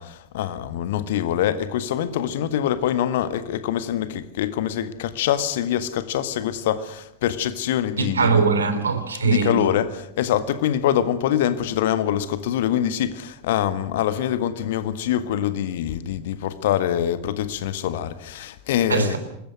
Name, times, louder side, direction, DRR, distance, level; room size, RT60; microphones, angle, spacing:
voice 1, 0.0-8.4 9.2-19.2, left 10 dB, 55° left, 1.7 m, -24 dB
voice 2, 8.0-9.6 18.9-19.2, right 5 dB, 70° right, 3.2 m, -21 dB
26.0 x 21.0 x 6.2 m
figure-of-eight pair, 90°, 0 cm